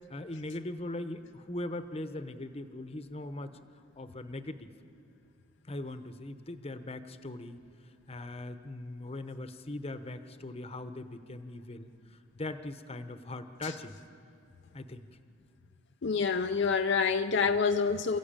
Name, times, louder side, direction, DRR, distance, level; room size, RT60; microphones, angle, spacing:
voice 1, 0.1-3.5 3.9-4.7 5.7-7.6 8.1-14.0 14.7-15.1, left 2 dB, 30° left, 0.9 m, -40 dB
voice 2, 16.0-18.2, left 5 dB, 60° left, 0.5 m, -27 dB
28.5 x 15.0 x 8.8 m
head